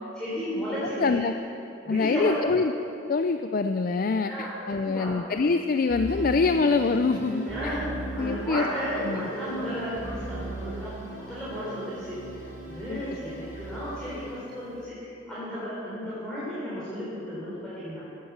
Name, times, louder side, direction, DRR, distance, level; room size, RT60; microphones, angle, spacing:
voice 1, 0.0-1.2 1.8-2.3 4.3-5.1 7.4-7.9 8.1-10.9 11.3-12.2 12.7-18.0, equal, 5° left, -11 dB, 3.8 m, -33 dB
voice 2, 1.0-1.3 1.9-2.7 3.1-7.8 8.2-8.6 9.0-9.3 12.9-13.0, left 4 dB, 50° left, 8 dB, 0.4 m, -25 dB
sound 1, 5.9-14.6, right 2 dB, 65° left, 3.3 m, -37 dB
15.0 x 8.7 x 7.2 m, 2.7 s
head